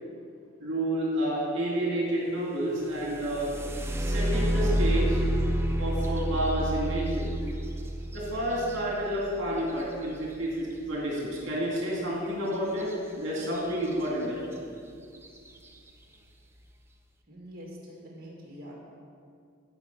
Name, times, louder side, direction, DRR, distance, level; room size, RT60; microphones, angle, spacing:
voice 1, 0.6-3.5 4.0-5.2 5.8-7.3 8.1-12.9 13.2-14.4, right 1 dB, 60° right, -4 dB, 2.3 m, -30 dB
sound 1, 2.9-10.7 12.8-12.9 13.4-13.9 14.5-14.6 15.1-15.5, right 1 dB, 10° right, 0.6 m, -29 dB
voice 2, 17.3-18.7, equal, 45° right, -3 dB, 2.3 m, -45 dB
16.0 x 5.4 x 5.4 m, 2.3 s
head